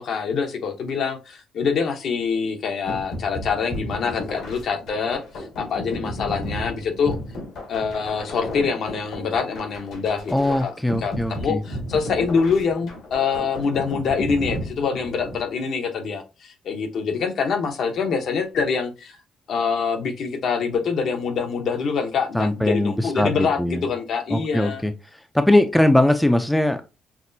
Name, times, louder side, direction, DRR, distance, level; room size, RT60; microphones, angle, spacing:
voice 1, 0.0-7.1 7.7-10.7 11.0-19.2 19.5-24.8, left 5 dB, 65° left, 0.9 m, -25 dB
sound 1, 2.9-15.4, left 1 dB, 85° left, 1.8 m, -34 dB
voice 2, 10.3-11.6 22.3-23.8 24.3-24.9 25.3-26.8, left 1 dB, 5° left, 0.5 m, -20 dB
5.9 x 2.1 x 2.6 m
cardioid pair, 90°, 0 cm